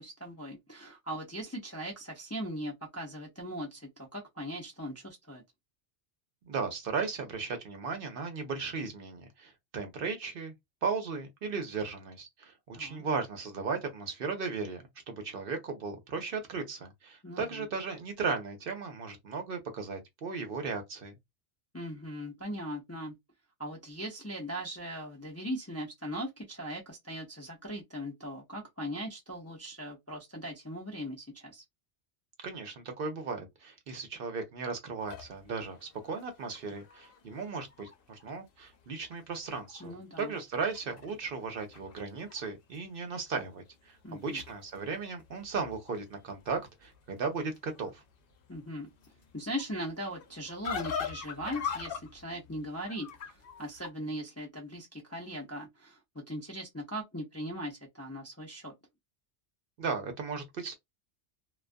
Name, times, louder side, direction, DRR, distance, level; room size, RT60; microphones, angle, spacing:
voice 1, 0.0-5.4 12.7-13.0 17.2-17.7 21.7-23.1 23.6-31.6 39.8-40.3 44.0-44.4 48.5-48.9 49.3-58.7, equal, 20° left, 0.4 m, -39 dB
voice 2, 6.5-10.5 10.8-21.2 32.4-48.0 59.8-60.7, right 4 dB, 60° right, 0.7 m, -36 dB
sound 1, 35.0-38.2 38.7-38.8 39.1-39.9 40.2-42.5 42.8-43.3 43.9-53.9, left 7 dB, 60° left, 0.8 m, -43 dB
2.3 x 2.2 x 2.4 m
omnidirectional pair, 1.2 m